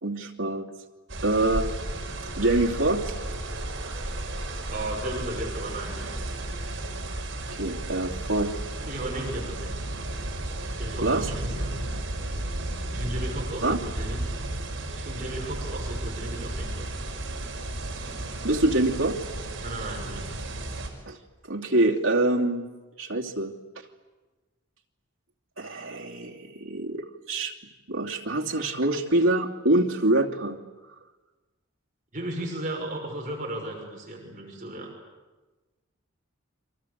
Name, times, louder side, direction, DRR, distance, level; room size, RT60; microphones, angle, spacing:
voice 1, 0.0-0.7 1.2-1.7 2.4-3.1 7.5-8.6 11.0-11.3 13.6-13.8 18.4-19.2 21.1-21.2 21.5-22.7 23.0-23.6 25.6-27.5 27.9-30.6, right 2 dB, 80° right, 0 dB, 2.7 m, -25 dB
sound 1, 1.1-20.9, right 1 dB, 60° right, 5.7 m, -33 dB
voice 2, 4.7-6.1 8.8-10.0 10.8-11.8 12.9-14.3 14.7-16.9 19.6-20.5 32.1-34.9, right 1 dB, 40° right, 0 dB, 6.0 m, -35 dB
30.0 x 24.5 x 8.2 m, 1.2 s
head